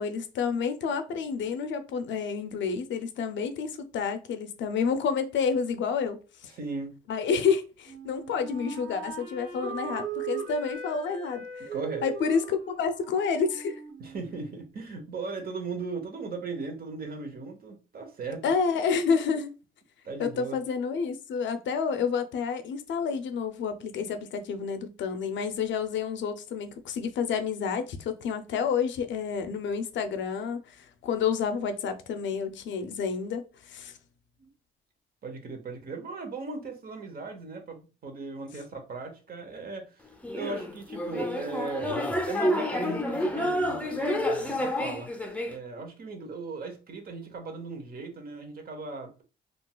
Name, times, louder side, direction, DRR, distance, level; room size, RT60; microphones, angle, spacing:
voice 1, 0.0-6.5 7.1-11.5 12.0-13.8 18.4-19.5 20.2-33.9, left 6 dB, 70° left, 0.5 m, -29 dB
voice 2, 6.5-6.9 11.7-12.0 14.0-18.4 20.0-20.6 34.4-34.5 35.2-39.9 40.3-41.9 42.3-45.1 45.4-49.2, right 4 dB, 50° right, 0.9 m, -38 dB
Wind instrument woodwind instrument, 7.8-14.7, right 6 dB, 70° right, 1.7 m, -39 dB
sound 1, 40.2-45.5, left 1 dB, 5° left, 0.6 m, -29 dB
3.8 x 2.4 x 2.3 m
cardioid pair, 90°, 20 cm